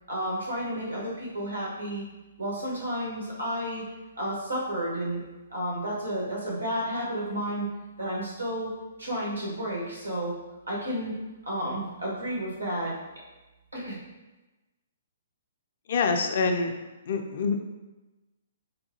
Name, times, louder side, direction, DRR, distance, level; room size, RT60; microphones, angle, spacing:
voice 1, 0.1-2.0 2.4-3.9 4.2-5.2 5.5-7.7 8.0-8.7 9.0-10.3 10.7-11.2 11.4-12.9 13.7-13.9, equal, 90° right, -4 dB, 1.2 m, -31 dB
voice 2, 15.9-16.7 17.1-17.6, left 4 dB, 55° left, 4 dB, 0.3 m, -25 dB
3.8 x 2.3 x 2.7 m, 1.1 s
figure-of-eight pair, 125°, 0 cm